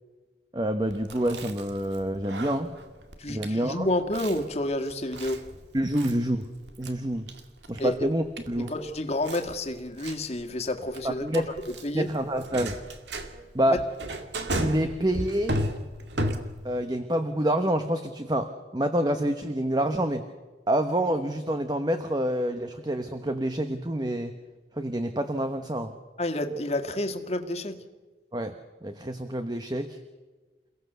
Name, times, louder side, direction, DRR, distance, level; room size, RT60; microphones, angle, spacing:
voice 1, 0.5-2.7 3.3-3.9 5.7-6.5 6.8-7.3 7.7-8.7 11.2-11.5 11.9-12.8 13.5-13.8 14.6-15.6 16.6-20.2 20.7-24.3 24.8-25.9 28.3-28.6 28.8-30.0, right 1 dB, 25° right, 8 dB, 1.1 m, -27 dB
Chewing mastication, 0.9-16.8, right 1 dB, 80° right, 2.2 m, -36 dB
voice 2, 3.2-5.4 7.8-8.0 8.7-12.1 13.7-13.8 26.2-27.8, left 1 dB, 35° left, 6 dB, 1.9 m, -30 dB
29.0 x 17.5 x 6.9 m, 1.3 s
head